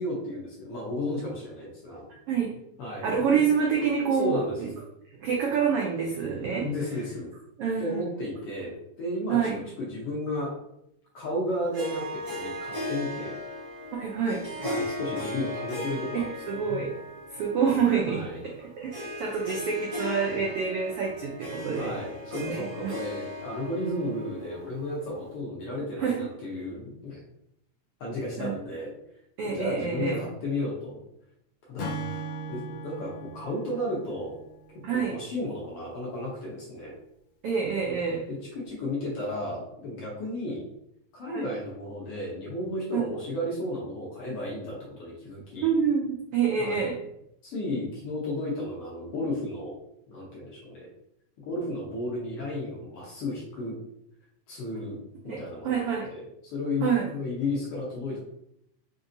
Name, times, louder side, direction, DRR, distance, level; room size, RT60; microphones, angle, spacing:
voice 1, 0.0-2.0 2.8-3.4 4.1-4.6 6.5-7.3 7.8-9.4 9.8-10.5 11.1-13.3 14.6-16.8 18.1-18.4 21.8-27.2 28.0-28.9 29.5-31.0 31.7-34.4 34.9-36.9 38.3-40.6 41.1-45.7 46.6-46.9 47.4-49.7 50.1-50.9 51.4-53.7 54.5-58.2, left 1 dB, 65° left, -4 dB, 1.5 m, -33 dB
voice 2, 3.0-4.7 5.2-6.6 7.6-8.0 9.3-9.6 13.9-14.7 16.1-16.9 17.3-21.9 22.4-22.9 26.0-26.1 28.4-28.5 29.4-30.2 34.8-35.1 37.4-38.2 41.3-41.4 42.9-43.0 45.6-46.9 55.3-56.1 56.8-57.0, right 6 dB, 85° right, -2 dB, 1.3 m, -27 dB
Harp, 11.7-25.4, left 1 dB, 45° right, 1.0 m, -37 dB
Acoustic guitar / Strum, 31.8-35.2, right 2 dB, 80° left, 2.0 m, -38 dB
5.0 x 2.7 x 2.6 m, 0.77 s
omnidirectional pair, 3.3 m